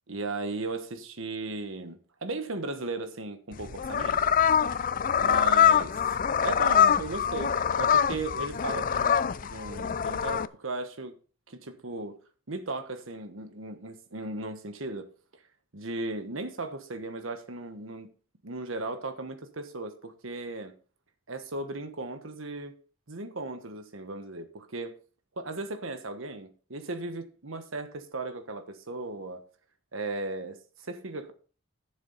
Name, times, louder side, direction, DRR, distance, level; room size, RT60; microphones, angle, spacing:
voice 1, 0.1-4.2 5.2-11.2 11.5-12.2 12.5-15.1 15.7-18.1 18.4-20.7 21.3-22.8 23.1-24.9 25.4-29.4 29.9-31.3, right 2 dB, 75° right, 1.3 m, -36 dB
sound 1, 3.5-10.5, left 8 dB, 40° left, 0.4 m, -24 dB
11.0 x 7.2 x 4.2 m
head